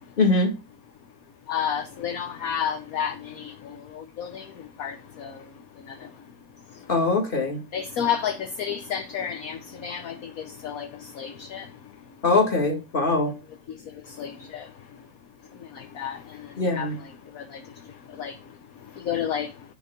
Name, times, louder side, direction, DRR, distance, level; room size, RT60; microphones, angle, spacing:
voice 1, 0.2-0.5 6.9-7.6 12.2-13.3 16.6-17.0, left 3 dB, 25° left, 2.2 m, -22 dB
voice 2, 1.5-4.5 4.8-5.4 5.9-6.1 7.7-11.7 14.1-14.7 15.7-16.9 17.3-17.6 18.2-18.4 19.0-19.5, left 8 dB, 55° left, 1.1 m, -31 dB
10.5 x 4.0 x 5.8 m
omnidirectional pair, 2.1 m